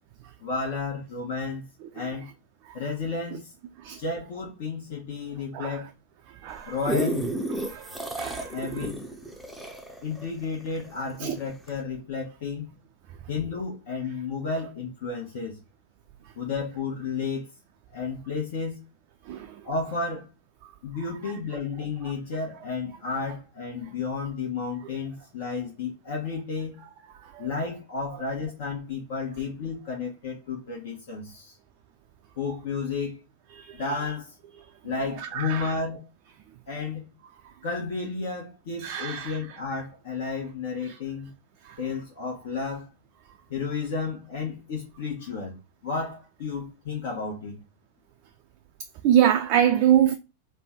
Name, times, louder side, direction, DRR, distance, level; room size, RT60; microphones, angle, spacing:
voice 1, 0.4-1.7 1.9-2.3 2.7-3.5 4.0-5.9 6.7-7.3 7.9-8.0 8.5-9.0 10.0-12.7 13.3-15.6 16.4-17.5 17.9-18.8 19.6-20.3 20.8-26.8 27.4-31.5 32.4-33.2 33.7-34.3 34.8-36.1 36.7-37.1 37.6-41.3 41.8-42.9 43.5-45.6 45.8-47.6, left 4 dB, 55° left, 0.9 m, -32 dB
voice 2, 6.4-6.7 7.6-8.6 11.2-11.4 19.3-19.5 27.3-27.5 33.6-33.8 35.2-35.7 38.8-39.4 41.7-41.8 49.0-50.1, right 10 dB, 45° right, 0.4 m, -24 dB
sound 1, 6.5-11.2 11.7-11.8, equal, ahead, 0.6 m, -31 dB
3.3 x 2.2 x 4.2 m
figure-of-eight pair, 90°, 0 cm